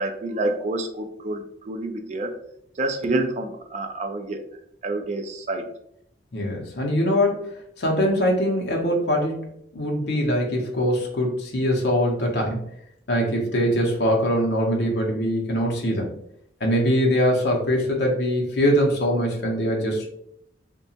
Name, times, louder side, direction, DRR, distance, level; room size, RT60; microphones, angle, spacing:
voice 1, 0.0-2.3 2.8-4.4 4.8-5.7, right 2 dB, 40° right, 4 dB, 0.3 m, -28 dB
voice 2, 6.3-9.4 9.7-12.6 13.1-16.1 16.6-20.0, equal, 65° left, -1 dB, 0.6 m, -22 dB
2.8 x 2.2 x 2.7 m, 0.72 s
head